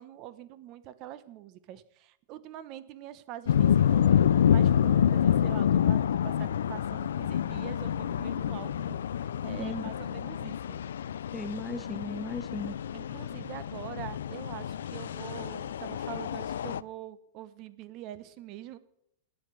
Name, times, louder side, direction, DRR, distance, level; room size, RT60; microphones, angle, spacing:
voice 1, 0.0-9.0 9.4-10.8 12.9-18.8, right 13 dB, 45° right, 14 dB, 1.0 m, -44 dB
sound 1, 3.5-16.8, left 9 dB, 90° left, 0.4 m, -27 dB
voice 2, 11.3-12.8, left 2 dB, 5° left, 12 dB, 0.8 m, -36 dB
10.5 x 8.9 x 7.7 m, 0.76 s
hypercardioid pair, 135°, 0 cm